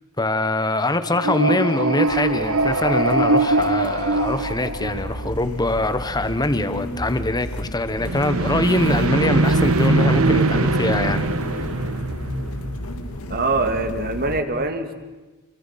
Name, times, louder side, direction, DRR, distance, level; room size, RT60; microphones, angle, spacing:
voice 1, 0.2-11.3, left 2 dB, 20° left, 11 dB, 1.1 m, -23 dB
sound 1, 1.1-5.4 8.0-13.0, right 2 dB, 70° right, 1.3 m, -21 dB
sound 2, 2.1-14.4, left 1 dB, 80° left, 2.1 m, -33 dB
voice 2, 13.3-14.9, right 3 dB, 45° right, 7 dB, 2.2 m, -23 dB
29.0 x 24.5 x 5.8 m, 1.2 s
head